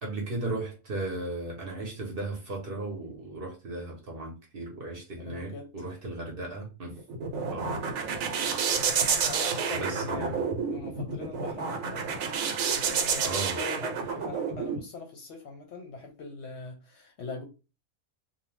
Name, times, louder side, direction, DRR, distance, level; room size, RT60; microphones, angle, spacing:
voice 1, 0.0-7.2 7.5-7.8 9.7-10.5 13.2-13.6, right 2 dB, 50° right, 0.9 m, -36 dB
voice 2, 5.2-5.7 7.7-8.0 9.3-12.2 12.9-17.4, left 3 dB, 65° left, 0.8 m, -42 dB
sound 1, 6.9-14.8, right 6 dB, 75° right, 1.0 m, -29 dB
2.6 x 2.1 x 3.1 m
omnidirectional pair, 1.4 m